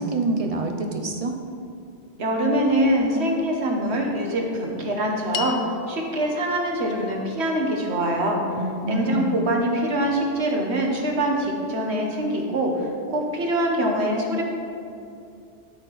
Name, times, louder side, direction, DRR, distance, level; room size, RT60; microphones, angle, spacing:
voice 1, 0.0-1.4 8.6-9.3, right 2 dB, 35° right, 3 dB, 0.8 m, -26 dB
voice 2, 2.2-8.4 8.8-14.4, right 1 dB, 80° right, 0 dB, 1.5 m, -24 dB
sound 1, 5.3-9.8, left 8 dB, 70° left, 0.8 m, -39 dB
12.0 x 4.4 x 5.7 m, 2.5 s
omnidirectional pair, 1.1 m